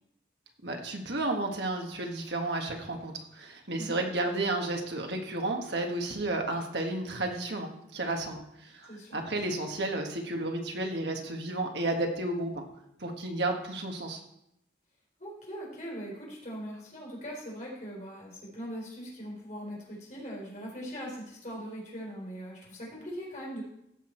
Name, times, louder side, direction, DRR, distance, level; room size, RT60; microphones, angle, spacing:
voice 1, 0.6-12.6 13.0-14.2, right 2 dB, 65° right, 2 dB, 1.6 m, -32 dB
voice 2, 8.8-9.2 15.2-23.6, equal, 40° left, -3 dB, 4.1 m, -41 dB
15.5 x 6.3 x 4.5 m, 0.78 s
head